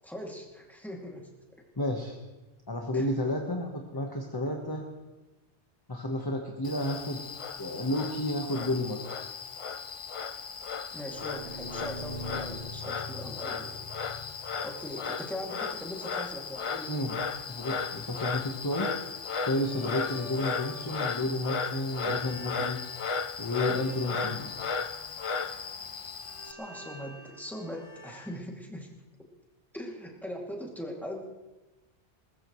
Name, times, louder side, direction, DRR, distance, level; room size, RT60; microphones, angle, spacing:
voice 1, 0.0-1.3 2.9-3.1 10.9-13.9 14.6-17.2 19.5-19.8 26.4-28.9 29.7-31.3, equal, ahead, -2 dB, 2.6 m, -40 dB
voice 2, 1.8-2.2 2.7-4.8 5.9-7.2 7.6-9.0 16.9-17.1 17.5-18.9 19.5-22.8 23.4-24.5, left 1 dB, 20° left, 1 dB, 1.3 m, -31 dB
Frog, 6.7-26.5, left 5 dB, 45° left, 0.4 m, -35 dB
sound 1, 11.1-15.3 19.1-21.5 21.8-28.3, left 1 dB, 85° right, 3.6 m, -46 dB
21.0 x 20.5 x 3.2 m, 1.1 s
omnidirectional pair, 1.2 m